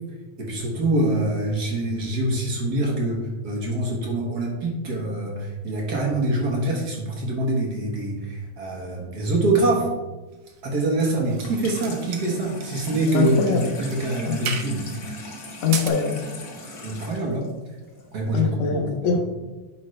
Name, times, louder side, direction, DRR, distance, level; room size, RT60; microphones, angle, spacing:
voice 1, 0.4-9.9 10.6-14.9 16.8-17.5 18.1-18.9, right 2 dB, 60° right, -1 dB, 1.0 m, -25 dB
sound 1, 10.5-11.5 11.8-13.0 13.4-13.5 13.9-14.0 14.5-14.8 15.5-15.9, right 7 dB, 75° right, 2.1 m, -33 dB
Water tap faucet / Sink (filling or washing), 11.3-18.4, left 1 dB, 40° left, 1.4 m, -39 dB
voice 2, 13.1-13.7 14.2-14.4 15.6-16.2 18.3-19.2, left 6 dB, 70° left, 1 dB, 2.4 m, -23 dB
10.5 x 5.1 x 3.2 m, 1.2 s
omnidirectional pair, 3.6 m